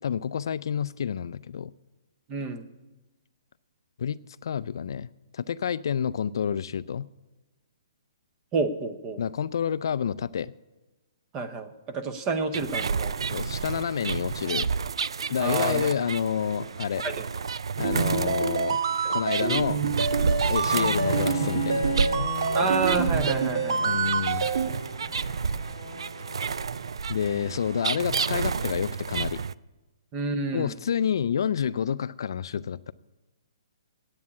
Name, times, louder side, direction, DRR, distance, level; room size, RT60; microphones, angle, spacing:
voice 1, 0.0-1.7 4.0-5.1 5.3-7.1 9.2-10.5 13.3-14.7 15.3-17.1 17.8-18.8 19.1-19.8 20.1-22.3 23.8-24.5 27.1-29.4 30.5-32.9, left 8 dB, 55° left, 16 dB, 0.3 m, -29 dB
voice 2, 2.3-2.7 8.5-9.2 11.3-13.1 15.4-15.9 17.0-17.2 19.0-19.1 19.4-19.6 22.5-24.0 30.1-30.7, right 4 dB, 15° right, 10 dB, 0.7 m, -29 dB
sound 1, 12.5-29.5, right 5 dB, 85° right, 0.4 m, -30 dB
sound 2, 17.8-24.7, right 5 dB, 65° right, 0.9 m, -27 dB
Bowed string instrument, 20.6-26.7, left 5 dB, 25° left, 1.1 m, -38 dB
9.4 x 8.6 x 9.5 m, 1.1 s
hypercardioid pair, 170°, 3 cm